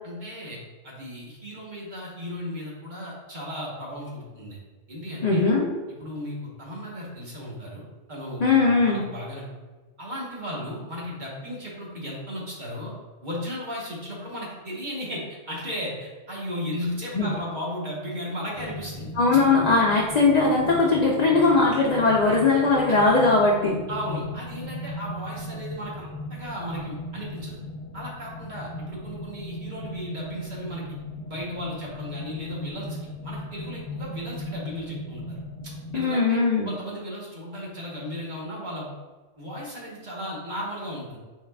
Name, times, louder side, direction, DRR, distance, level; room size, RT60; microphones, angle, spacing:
voice 1, 0.0-0.6 0.8-4.6 4.9-5.4 6.0-7.8 8.1-9.5 10.0-12.9 13.2-19.1 22.9-23.0 23.9-27.6 27.9-30.8 31.2-33.0 33.2-35.4 35.6-36.4 36.6-38.9 39.4-41.2, equal, 40° right, -5 dB, 1.1 m, -35 dB
voice 2, 5.2-5.7 8.4-9.0 17.1-17.3 19.2-23.8 35.9-36.7, left 3 dB, 55° left, -3 dB, 0.5 m, -20 dB
sound 1, 18.5-36.0, left 1 dB, 75° left, 0.9 m, -37 dB
4.6 x 3.5 x 2.3 m, 1.3 s
omnidirectional pair, 1.2 m